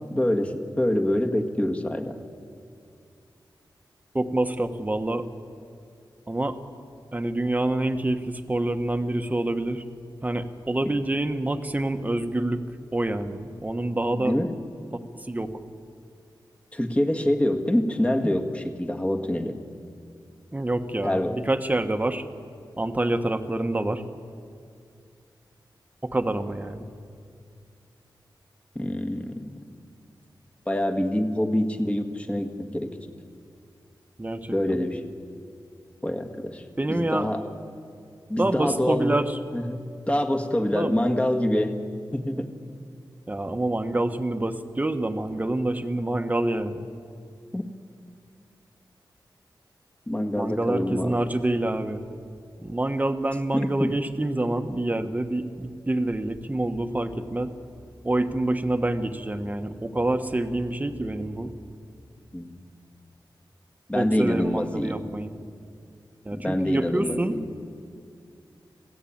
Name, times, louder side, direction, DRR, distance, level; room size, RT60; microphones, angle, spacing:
voice 1, 0.1-2.2 10.8-10.9 14.1-14.5 16.7-19.6 21.0-21.4 28.8-29.4 30.7-33.0 34.5-35.0 36.0-37.4 38.3-39.2 39.5-39.8 40.1-41.8 42.1-42.5 47.5-47.6 50.1-51.3 53.5-54.0 62.3-62.7 63.9-65.0 66.3-67.5, left 1 dB, 15° left, 3 dB, 1.8 m, -26 dB
voice 2, 4.1-5.2 6.3-6.6 7.1-9.8 10.2-12.6 12.9-14.3 15.3-15.5 20.5-22.2 22.8-24.0 26.0-26.9 34.2-34.8 36.8-37.3 38.4-39.4 40.7-40.9 43.3-46.9 50.4-52.0 52.6-57.5 58.0-61.5 63.9-65.3 66.2-67.4, right 1 dB, 20° right, 7 dB, 1.3 m, -27 dB
26.0 x 16.5 x 8.8 m, 2.3 s
wide cardioid pair, 90°, 8 cm